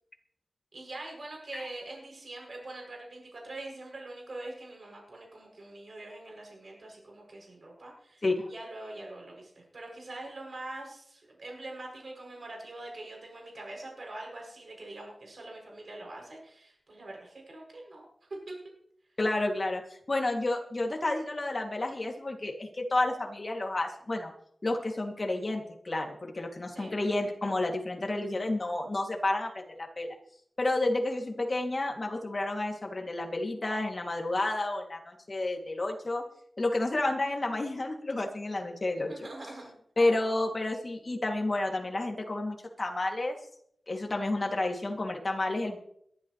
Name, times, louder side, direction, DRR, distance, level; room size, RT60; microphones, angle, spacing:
voice 1, 0.7-18.1 26.7-27.0 39.1-39.7, right 2 dB, 60° right, -1 dB, 7.7 m, -44 dB
voice 2, 19.2-19.8 20.1-24.3 24.6-30.2 30.6-36.2 36.6-39.1 40.0-43.4 43.9-45.8, left 2 dB, 40° left, 1 dB, 2.9 m, -30 dB
22.0 x 12.5 x 3.4 m, 0.69 s
wide cardioid pair, 90°, 0 cm